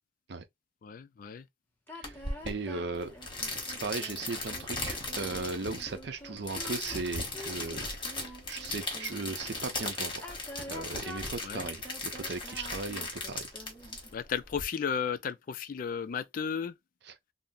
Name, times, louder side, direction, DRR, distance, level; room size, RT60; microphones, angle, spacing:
voice 1, 0.8-1.5 11.4-11.7 14.1-16.7, left 7 dB, 45° left, 0.3 m, -34 dB
sound 1, 1.9-9.4 10.1-14.1, left 1 dB, 10° left, 0.7 m, -47 dB
sound 2, 2.0-14.6, left 2 dB, 25° left, 1.1 m, -38 dB
voice 2, 2.5-3.1 3.8-7.9 8.3-10.3 10.7-13.5, right 3 dB, 60° right, 0.6 m, -37 dB
3.6 x 2.0 x 2.6 m
head